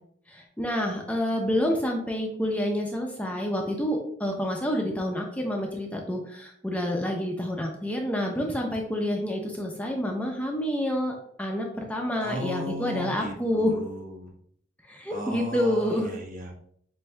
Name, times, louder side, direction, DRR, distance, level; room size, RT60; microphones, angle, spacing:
voice 1, 0.3-13.7 14.9-16.1, equal, 10° left, 1 dB, 0.5 m, -28 dB
voice 2, 12.2-14.3 15.1-16.6, left 1 dB, 45° right, 1 dB, 1.0 m, -36 dB
7.4 x 2.6 x 2.2 m, 0.64 s
head